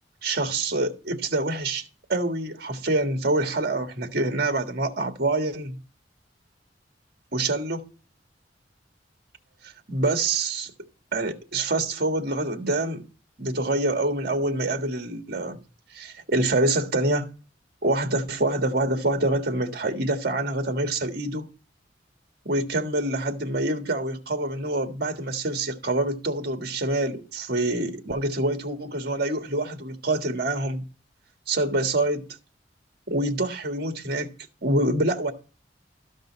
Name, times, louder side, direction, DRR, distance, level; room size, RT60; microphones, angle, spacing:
voice 1, 0.2-5.7 7.3-7.9 9.6-10.7 11.1-13.1 13.4-15.6 15.9-17.3 17.8-21.5 22.4-30.8 31.5-32.3 33.1-34.3 34.6-35.3, right 2 dB, 60° right, 1.5 m, -26 dB
13.0 x 5.4 x 6.2 m
head